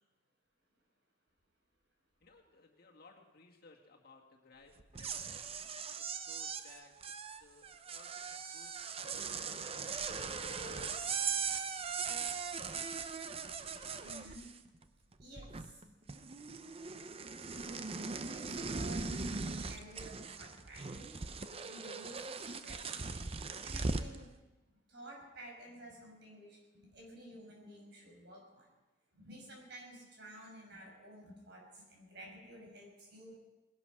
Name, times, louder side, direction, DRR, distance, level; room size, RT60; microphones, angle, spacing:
voice 1, 2.2-6.9 7.4-11.0, left 3 dB, 55° left, 1 dB, 2.1 m, -62 dB
sound 1, 4.8-14.8 15.1-24.2, right 5 dB, 30° right, 0.7 m, -40 dB
voice 2, 14.0-14.5 15.2-16.0 18.3-21.2 21.6-23.1 23.5-24.3 24.9-28.7 29.1-33.4, right 1 dB, 65° right, 0 dB, 5.5 m, -53 dB
19.5 x 11.5 x 6.1 m, 1.1 s
head